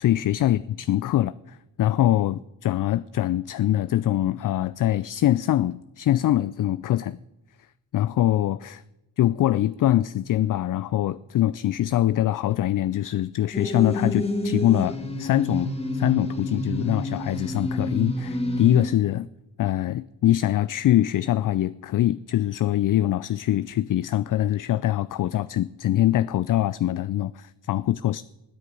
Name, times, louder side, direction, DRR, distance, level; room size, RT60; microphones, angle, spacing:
voice 1, 0.0-7.2 7.9-8.8 9.2-19.3 19.6-28.2, left 13 dB, 50° left, 0.4 m, -23 dB
sound 1, 13.5-18.9, left 1 dB, 15° left, 2.3 m, -29 dB
20.5 x 6.8 x 5.3 m
cardioid pair, 65°, 44 cm